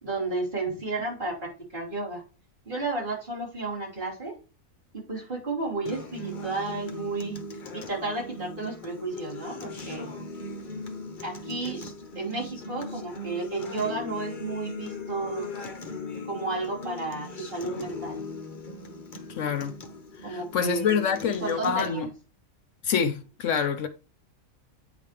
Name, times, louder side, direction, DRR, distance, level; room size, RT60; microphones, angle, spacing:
voice 1, 0.0-2.2 2.6-4.4 4.9-7.3 7.7-10.1 11.2-11.8 12.1-15.5 16.2-18.2 20.2-22.1, right 3 dB, 40° right, 3.4 m, -32 dB
Acoustic guitar, 5.9-21.9, left 2 dB, 40° left, 1.1 m, -39 dB
voice 2, 19.3-19.7 20.2-22.1 22.8-23.9, left 7 dB, 70° left, 0.9 m, -26 dB
9.1 x 5.1 x 3.3 m
omnidirectional pair, 1.4 m